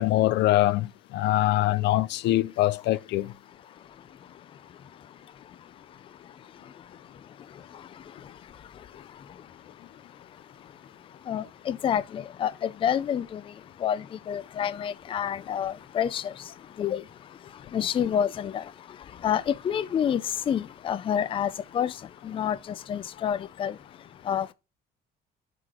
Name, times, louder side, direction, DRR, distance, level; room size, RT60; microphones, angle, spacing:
voice 1, 0.0-3.3, left 15 dB, 85° left, 0.6 m, -23 dB
voice 2, 3.7-24.5, left 9 dB, 30° left, 0.4 m, -31 dB
7.7 x 4.7 x 4.9 m
cardioid pair, 155°, 18 cm